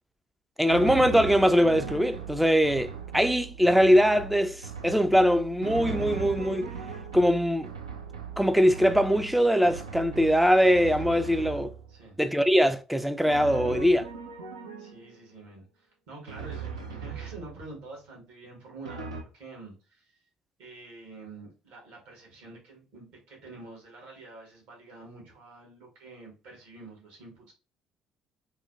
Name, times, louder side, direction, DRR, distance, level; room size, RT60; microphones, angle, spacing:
voice 1, 0.6-6.7 7.1-7.7 8.4-11.7 12.2-14.1, equal, 5° right, 0.3 m, -22 dB
Drum, 0.7-12.0 13.3-15.2 16.3-17.8 18.8-19.2, right 5 dB, 90° right, 0.4 m, -38 dB
voice 2, 14.8-20.2 20.6-27.5, right 3 dB, 65° right, 1.2 m, -47 dB
3.1 x 2.0 x 2.3 m
hypercardioid pair, 55°, 3 cm